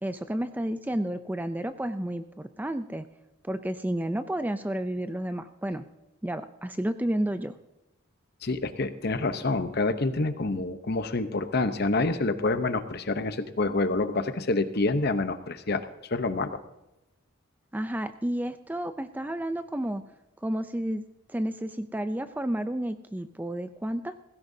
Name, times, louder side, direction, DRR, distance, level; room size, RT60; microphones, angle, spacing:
voice 1, 0.0-3.1 3.4-5.9 6.2-7.6 17.7-20.0 20.4-21.0 21.3-24.2, right 1 dB, 10° right, 10 dB, 0.4 m, -31 dB
voice 2, 8.4-16.6, left 3 dB, 50° left, 10 dB, 0.8 m, -27 dB
17.0 x 16.0 x 2.7 m, 0.94 s
head